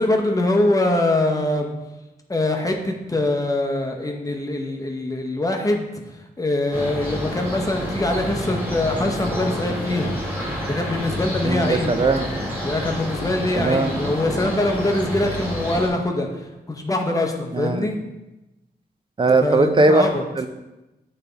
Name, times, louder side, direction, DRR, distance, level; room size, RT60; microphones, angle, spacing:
voice 1, 0.0-1.7 2.3-5.9 6.4-10.1 10.6-11.9 12.6-18.0 19.4-20.2, left 2 dB, 20° left, 3 dB, 0.7 m, -23 dB
sound 1, 6.7-15.9, equal, 10° right, 1.9 m, -28 dB
voice 2, 11.4-12.3 13.5-13.9 17.5-17.9 19.2-20.1 20.4-20.5, right 3 dB, 30° right, 8 dB, 0.4 m, -19 dB
9.1 x 3.3 x 3.9 m, 0.99 s
wide cardioid pair, 145°, 17 cm